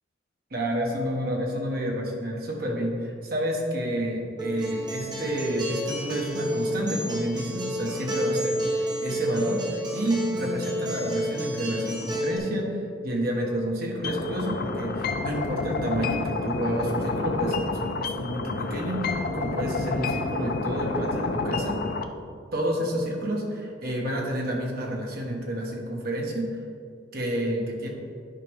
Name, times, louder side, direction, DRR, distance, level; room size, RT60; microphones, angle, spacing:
voice 1, 0.5-21.8 22.5-26.6 27.1-27.9, equal, 50° right, -1 dB, 1.2 m, -29 dB
Acoustic guitar, 4.4-12.4, equal, 20° right, 1.0 m, -30 dB
sound 1, 14.0-22.0, left 3 dB, 50° left, 0.4 m, -29 dB
10.5 x 5.0 x 3.5 m, 2.4 s
head